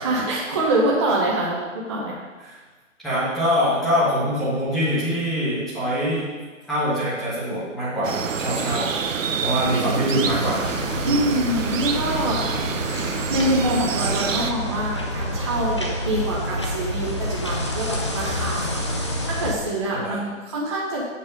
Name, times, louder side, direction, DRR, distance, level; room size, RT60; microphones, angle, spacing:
voice 1, 0.0-2.2 9.7-9.9 11.1-12.7 13.3-21.1, right 1 dB, 20° right, -4 dB, 0.7 m, -25 dB
voice 2, 3.0-6.3 6.7-8.9 9.4-10.6 11.0-11.1 19.9-20.2, equal, ahead, -13 dB, 1.4 m, -24 dB
sound 1, 8.0-14.5, right 6 dB, 75° right, 0.8 m, -27 dB
sound 2, 10.2-19.5, left 1 dB, 25° left, 0.5 m, -28 dB
7.4 x 5.9 x 5.1 m, 1.4 s
hypercardioid pair, 165°, 39 cm